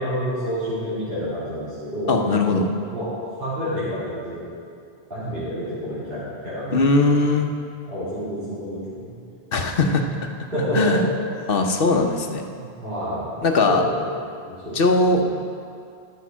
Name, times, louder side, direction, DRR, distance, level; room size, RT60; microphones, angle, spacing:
voice 1, 0.0-2.2 2.9-3.1 3.4-4.5 5.1-6.8 7.9-9.2 10.5-11.0 12.6-14.0 14.4-14.8 15.0-15.2, equal, 60° right, -15 dB, 3.7 m, -29 dB
voice 2, 2.1-2.7 6.7-7.5 9.5-10.0 10.7-11.0 11.5-12.4 13.4-13.8 14.7-15.2, left 3 dB, 60° left, 4 dB, 1.0 m, -19 dB
13.0 x 6.4 x 6.2 m, 2.4 s
omnidirectional pair, 1.1 m